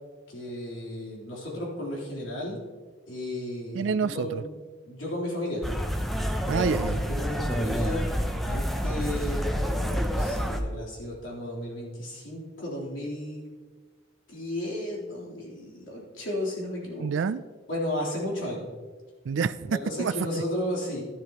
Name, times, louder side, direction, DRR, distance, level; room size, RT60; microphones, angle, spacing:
voice 1, 0.3-2.6 3.1-4.5 4.9-5.6 7.1-8.1 8.4-13.4 14.3-17.1 17.7-18.7 19.7-21.0, left 1 dB, 85° left, -4 dB, 3.6 m, -34 dB
voice 2, 3.7-4.4 6.5-7.1 17.0-17.4 19.3-20.1, right 5 dB, 75° right, 14 dB, 0.4 m, -27 dB
sound 1, 5.6-10.6, equal, ahead, 0.6 m, -28 dB
12.5 x 11.5 x 3.0 m, 1.4 s
head